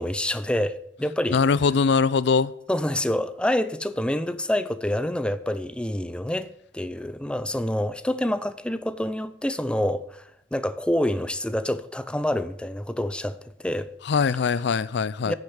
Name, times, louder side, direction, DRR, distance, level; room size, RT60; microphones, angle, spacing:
voice 1, 0.0-1.4 2.7-6.5 6.7-13.9 15.2-15.3, left 1 dB, 5° left, 0.5 m, -27 dB
voice 2, 1.3-2.5 14.1-15.3, left 5 dB, 65° left, 0.4 m, -22 dB
9.8 x 6.7 x 8.7 m
head